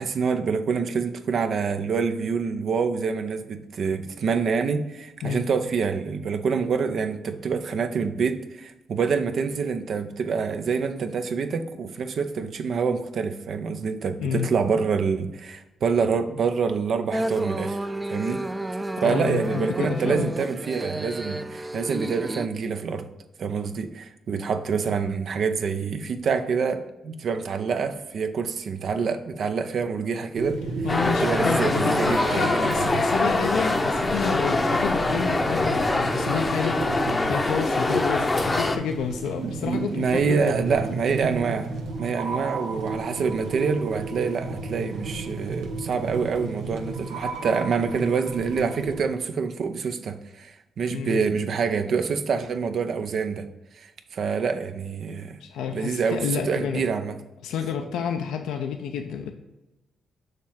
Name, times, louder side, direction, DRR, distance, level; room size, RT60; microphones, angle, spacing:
voice 1, 0.0-17.8 18.1-18.4 19.0-23.1 23.4-30.6 31.2-33.1 39.4-53.5 53.7-55.4 55.7-57.2, right 5 dB, 65° right, 8 dB, 0.6 m, -26 dB
sound 1, 17.1-22.5, right 1 dB, 15° right, 0.5 m, -31 dB
voice 2, 19.0-20.3 30.8-40.6 50.9-51.2 55.4-56.8 57.4-59.3, left 7 dB, 80° left, 5 dB, 0.4 m, -30 dB
sound 2, 30.3-49.0, right 3 dB, 85° right, 0.9 m, -33 dB
sound 3, 30.9-38.8, left 2 dB, 30° left, 0.7 m, -24 dB
6.6 x 3.1 x 5.6 m, 0.97 s
supercardioid pair, 50°, 0 cm